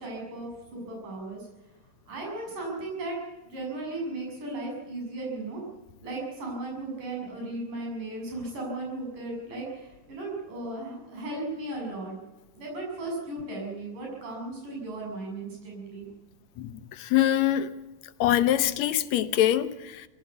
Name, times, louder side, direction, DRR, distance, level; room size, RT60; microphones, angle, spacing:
voice 1, 0.0-1.5 2.1-3.2 3.4-5.6 6.0-12.1 12.6-16.1, right 2 dB, 85° right, 8.6 m, -36 dB
voice 2, 16.6-17.7 18.2-20.0, left 12 dB, 70° left, 2.1 m, -24 dB
21.5 x 17.0 x 8.3 m
omnidirectional pair, 3.6 m